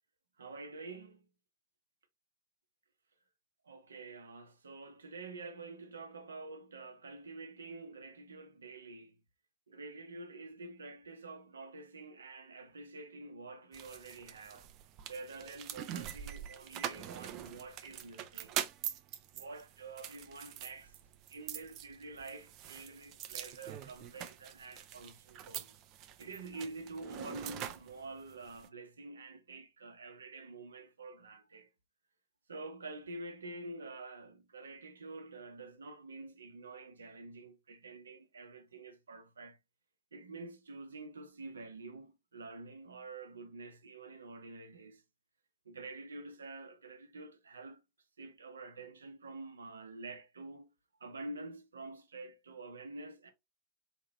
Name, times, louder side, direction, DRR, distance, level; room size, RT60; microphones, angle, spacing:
voice 1, 0.4-1.2 3.7-9.2 9.7-14.7 15.1-18.5 19.3-21.0 21.3-25.7 26.2-31.7 32.5-39.6 40.1-45.0 45.6-47.8 48.2-50.7 51.0-53.3, right 3 dB, 70° right, 0.8 m, -48 dB
sound 1, 13.7-28.7, right 11 dB, 40° right, 0.5 m, -44 dB
4.1 x 2.8 x 2.9 m
figure-of-eight pair, 90°, 0 cm